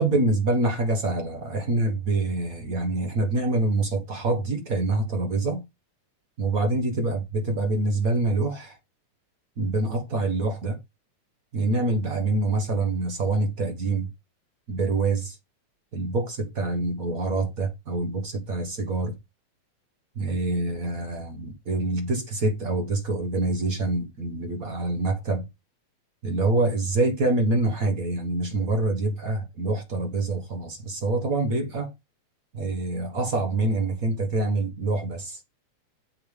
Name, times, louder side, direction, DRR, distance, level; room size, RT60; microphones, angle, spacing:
voice 1, 0.0-5.6 6.4-8.8 9.6-10.8 11.5-14.1 14.7-15.4 15.9-19.1 20.1-25.5 26.2-31.9 32.5-35.4, right 2 dB, 40° right, 1.2 m, -26 dB
9.0 x 7.1 x 3.4 m
omnidirectional pair, 3.6 m